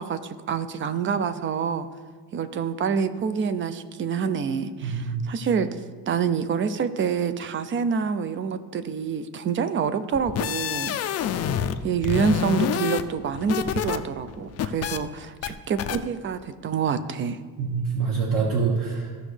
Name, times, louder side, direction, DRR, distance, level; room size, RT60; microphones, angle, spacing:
voice 1, 0.0-1.9 2.3-5.7 6.1-11.0 11.8-17.4, right 6 dB, 35° right, 12 dB, 0.4 m, -27 dB
voice 2, 4.8-5.2 17.6-19.1, right 5 dB, 60° right, -3 dB, 1.5 m, -25 dB
sound 1, 10.1-11.8 12.0-14.0 14.3-15.0 15.4-15.5 15.8-16.0, left 9 dB, 40° left, 0.4 m, -27 dB
15.0 x 6.1 x 3.3 m, 1.5 s
cardioid pair, 160°, 38 cm